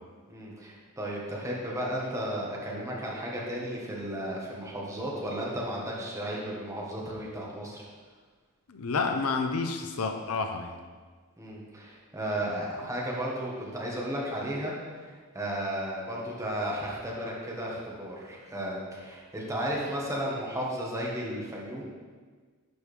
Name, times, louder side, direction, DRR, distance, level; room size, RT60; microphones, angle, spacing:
voice 1, 0.3-7.8 11.4-21.8, equal, 15° right, -4 dB, 1.4 m, -34 dB
voice 2, 8.7-10.8, left 4 dB, 85° left, 6 dB, 0.6 m, -29 dB
10.5 x 4.8 x 3.4 m, 1.5 s
head